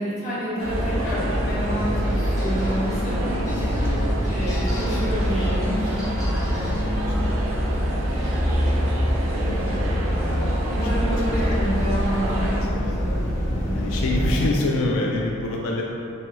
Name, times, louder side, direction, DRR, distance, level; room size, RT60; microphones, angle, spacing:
voice 1, 0.0-3.8 4.3-6.0 10.7-13.3 13.6-13.7, equal, 35° left, -13 dB, 1.4 m, -29 dB
sound 1, 0.6-14.5, equal, 60° left, 0.9 m, -25 dB
sound 2, 0.6-12.6, right 2 dB, 80° right, 0.5 m, -32 dB
sound 3, 2.1-9.7, left 1 dB, 15° left, 0.6 m, -35 dB
voice 2, 3.0-3.4 3.9-4.4 6.5-7.3 7.7-8.2 9.0-11.1 11.4-11.9 12.3-13.1 13.7-15.8, left 2 dB, 90° left, -1 dB, 0.3 m, -30 dB
3.4 x 3.1 x 2.9 m, 3.0 s
head